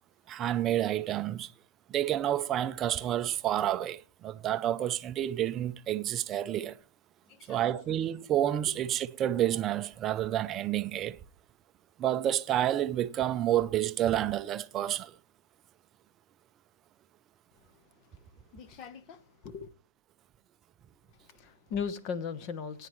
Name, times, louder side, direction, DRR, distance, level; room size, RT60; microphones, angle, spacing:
voice 1, 0.3-1.5 1.9-6.8 7.5-11.2 12.0-15.2, right 12 dB, 25° right, 0.5 m, -29 dB
voice 2, 7.3-7.6 18.5-19.7 21.3-22.9, left 6 dB, 35° left, 0.9 m, -38 dB
17.5 x 9.7 x 3.1 m
hypercardioid pair, 145°, 0 cm